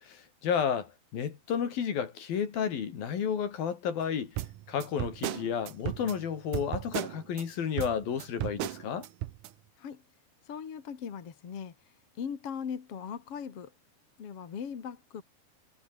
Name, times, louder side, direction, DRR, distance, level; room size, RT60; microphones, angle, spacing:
voice 1, 0.0-4.4 4.7-9.1, left 7 dB, 60° left, 4.6 m, -32 dB
sound 1, 4.4-7.5 7.8-9.5, right 14 dB, 70° right, 2.0 m, -36 dB
voice 2, 10.5-11.7 12.2-13.7 14.2-15.2, left 7 dB, 40° left, 2.6 m, -39 dB
omnidirectional pair, 4.8 m